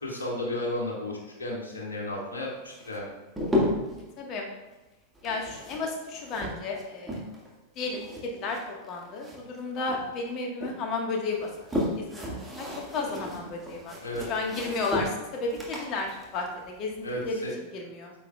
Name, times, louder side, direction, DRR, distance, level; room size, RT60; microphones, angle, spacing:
voice 1, 0.0-3.1 14.0-14.2 17.0-17.5, left 1 dB, 70° left, -2 dB, 2.0 m, -33 dB
sound 1, 2.7-4.0 5.1-7.5 7.8-9.6 9.9-10.8 11.3-17.4, left 1 dB, 5° right, 1.8 m, -34 dB
voice 2, 4.2-4.5 5.2-7.2 7.7-12.7 12.9-14.0 14.3-18.1, left 3 dB, 35° left, 1 dB, 1.5 m, -33 dB
8.9 x 7.1 x 2.4 m, 1.1 s
figure-of-eight pair, 90°, 0 cm